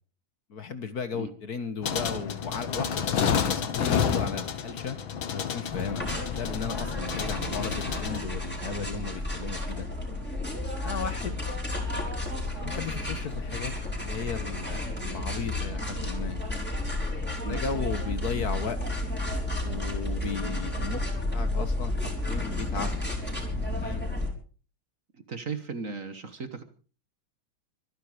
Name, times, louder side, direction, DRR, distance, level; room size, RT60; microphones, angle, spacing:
voice 1, 0.5-5.0 5.3-6.1 6.4-9.9 10.8-11.4 12.6-16.4 17.5-18.8 19.6-21.0 21.3-22.9 23.8-24.1, left 5 dB, 50° left, 11 dB, 1.7 m, -35 dB
sound 1, 1.8-8.2, left 7 dB, 80° left, 2.3 m, -30 dB
sound 2, 6.0-24.3, left 1 dB, 5° left, 4.5 m, -32 dB
voice 2, 25.3-26.6, right 4 dB, 45° right, 10 dB, 1.7 m, -36 dB
25.0 x 10.5 x 5.1 m, 0.40 s
omnidirectional pair, 2.2 m